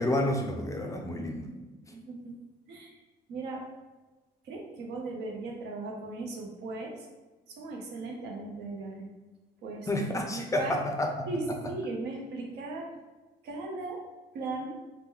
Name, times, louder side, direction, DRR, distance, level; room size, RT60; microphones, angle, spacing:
voice 1, 0.0-1.5 9.9-11.3, left 1 dB, 20° left, 2 dB, 0.4 m, -29 dB
voice 2, 1.9-2.4 2.7-2.9 3.3-3.6 4.4-7.1 7.5-9.1 9.6-9.9 10.3-10.7 11.3-12.9 13.4-14.1 14.3-14.8, right 3 dB, 80° right, 0 dB, 0.7 m, -37 dB
2.9 x 2.1 x 3.6 m, 1.2 s
cardioid pair, 110°, 17 cm